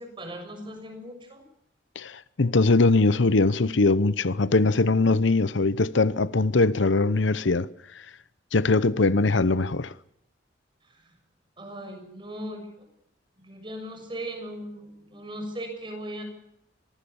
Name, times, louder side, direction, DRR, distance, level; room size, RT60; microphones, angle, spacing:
voice 1, 0.0-1.4 10.9-11.1 11.6-12.9 13.4-16.2, right 1 dB, 25° right, 6.7 m, -38 dB
voice 2, 2.0-7.7 8.5-9.9, left 3 dB, 70° left, 0.8 m, -21 dB
25.0 x 19.5 x 7.0 m
head